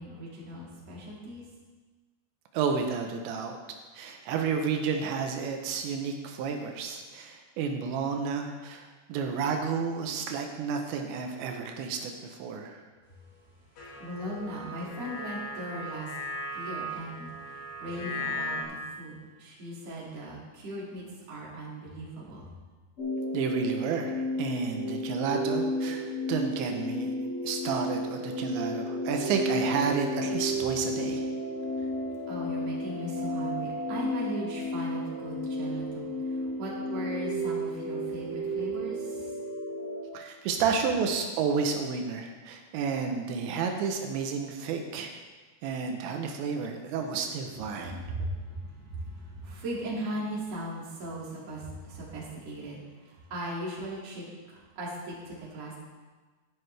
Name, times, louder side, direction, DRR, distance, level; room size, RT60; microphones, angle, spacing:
voice 1, 0.0-1.4 14.0-16.1 16.5-22.4 32.2-39.4 48.1-55.8, right 1 dB, 40° right, -5 dB, 3.1 m, -38 dB
voice 2, 2.5-3.6 3.9-12.8 23.3-27.1 27.4-31.3 40.1-45.1 45.6-48.0, right 5 dB, 85° right, 4 dB, 3.1 m, -31 dB
sound 1, 13.8-18.6, left 1 dB, 65° left, 4.3 m, -37 dB
sound 2, 23.0-40.0, equal, 35° left, 1.3 m, -32 dB
12.5 x 11.0 x 3.3 m, 1.3 s
omnidirectional pair, 5.0 m